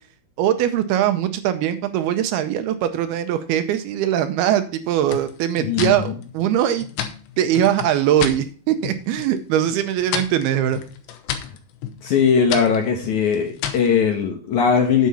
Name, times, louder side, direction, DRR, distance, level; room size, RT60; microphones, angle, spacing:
voice 1, 0.4-6.9 7.4-10.8, right 11 dB, 80° right, 10 dB, 2.4 m, -21 dB
sound 1, 5.1-8.4 8.8-9.4 9.7-13.9, left 9 dB, 85° left, 3.3 m, -31 dB
voice 2, 5.6-6.1 11.3-11.5 12.0-15.1, left 6 dB, 70° left, 3 dB, 1.8 m, -20 dB
9.5 x 7.4 x 4.2 m, 0.40 s
omnidirectional pair, 5.0 m